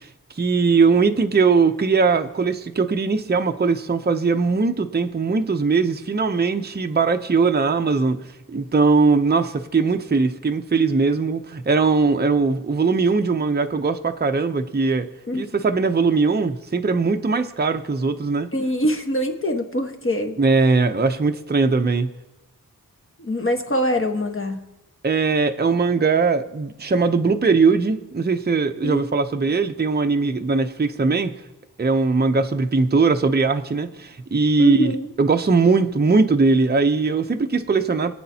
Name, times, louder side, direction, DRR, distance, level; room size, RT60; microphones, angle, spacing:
voice 1, 0.4-8.2 8.5-15.1 15.4-18.5 20.4-22.1 25.0-31.4 31.8-34.9 35.2-38.1, right 4 dB, 25° right, 0.6 m, -20 dB
voice 2, 18.5-20.4 23.2-24.6 28.8-29.2 34.6-35.1, equal, 35° left, 1.3 m, -24 dB
25.0 x 8.6 x 2.8 m
wide cardioid pair, 70°, 36 cm